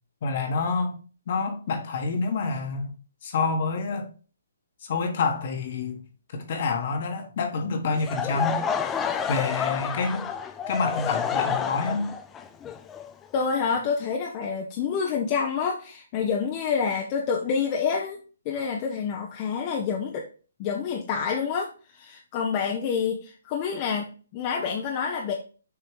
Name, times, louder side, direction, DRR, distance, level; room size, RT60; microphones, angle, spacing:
voice 1, 0.2-1.0 1.3-2.9 3.2-4.1 4.8-6.0 6.3-8.6 9.3-10.3 10.7-12.1, left 4 dB, 50° left, 1.4 m, -27 dB
Laughter / Crowd, 8.0-13.9, left 7 dB, 15° left, 0.5 m, -29 dB
voice 2, 13.3-18.2 18.4-20.2 20.6-25.3, left 6 dB, 35° left, 0.8 m, -28 dB
7.0 x 3.0 x 4.9 m
figure-of-eight pair, 135°, 0 cm